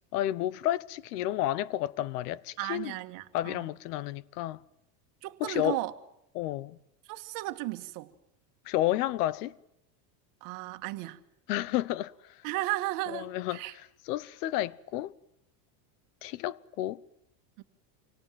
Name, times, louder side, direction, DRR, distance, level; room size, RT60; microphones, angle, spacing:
voice 1, 0.1-2.9 3.3-4.6 5.4-5.8 6.3-6.8 8.7-9.5 11.5-12.1 13.1-15.1 16.2-17.0, left 14 dB, 70° left, 1.2 m, -31 dB
voice 2, 2.6-3.6 5.2-5.9 7.1-8.1 10.4-11.2 12.4-13.7 17.6-17.7, right 18 dB, 40° right, 1.8 m, -35 dB
27.5 x 24.5 x 7.6 m
cardioid pair, 180°, 48 cm